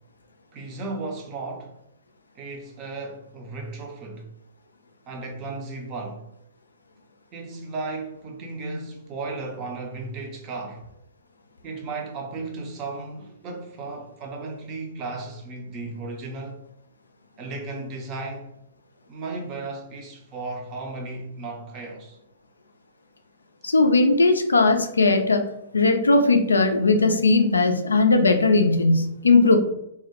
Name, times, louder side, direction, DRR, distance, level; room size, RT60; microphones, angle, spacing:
voice 1, 0.5-1.8 2.4-4.3 5.1-6.3 7.3-10.9 11.6-16.6 17.4-18.5 19.1-22.2, right 3 dB, 30° right, 0.5 m, -35 dB
voice 2, 23.6-25.4 25.7-29.6, left 3 dB, 80° left, 0.3 m, -18 dB
2.3 x 2.0 x 2.8 m
figure-of-eight pair, 110°, 0 cm